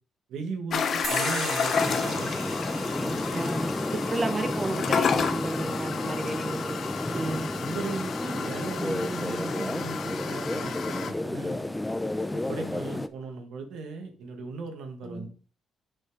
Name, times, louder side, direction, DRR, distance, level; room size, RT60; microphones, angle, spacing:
voice 1, 0.3-2.3 3.0-3.5 6.0-6.1 7.1-11.7 12.3-15.3, right 4 dB, 80° right, 1.4 m, -37 dB
sound 1, 0.7-11.1, left 6 dB, 60° left, 0.8 m, -31 dB
sound 2, 1.0-8.1, right 5 dB, 55° right, 1.0 m, -40 dB
sound 3, 1.7-13.1, left 1 dB, 10° left, 0.6 m, -32 dB
voice 2, 3.3-3.7 4.1-6.8 7.0-7.5 15.0-15.3, right 2 dB, 30° right, 1.2 m, -32 dB
6.5 x 5.6 x 4.6 m
cardioid pair, 90°, 0 cm